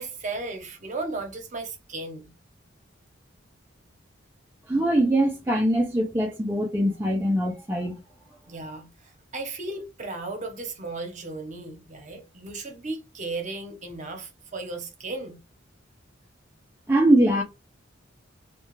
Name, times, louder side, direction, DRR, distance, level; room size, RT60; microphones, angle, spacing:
voice 1, 0.0-2.3 8.5-15.4, right 3 dB, 40° right, 0.7 m, -35 dB
voice 2, 4.7-8.0 16.9-17.4, right 1 dB, 10° right, 0.3 m, -22 dB
2.3 x 2.1 x 3.0 m
head